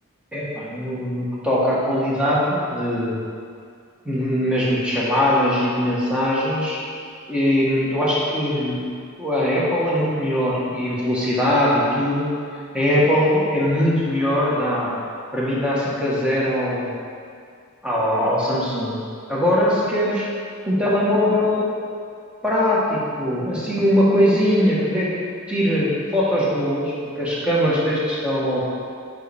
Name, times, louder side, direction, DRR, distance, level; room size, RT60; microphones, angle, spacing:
voice 1, 0.3-3.2 4.0-6.8 7.3-8.9 9.2-12.3 12.7-14.9 15.3-16.9 17.8-19.0 19.3-20.3 20.7-21.7 22.4-25.1 25.5-28.6, equal, 5° right, -7 dB, 1.3 m, -21 dB
7.6 x 5.2 x 3.4 m, 2.3 s
head